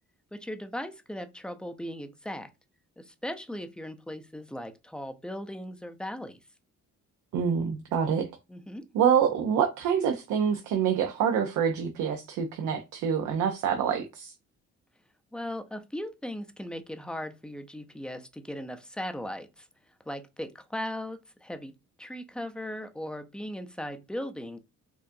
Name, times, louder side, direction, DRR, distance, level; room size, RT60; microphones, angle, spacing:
voice 1, 0.3-2.5 3.0-6.4 8.5-8.8 15.3-19.6 20.1-21.7 22.0-24.6, left 1 dB, 5° left, 0.5 m, -38 dB
voice 2, 7.3-8.3 8.9-14.3, right 8 dB, 80° right, 0.6 m, -26 dB
4.7 x 2.5 x 2.6 m
cardioid pair, 90°, 30 cm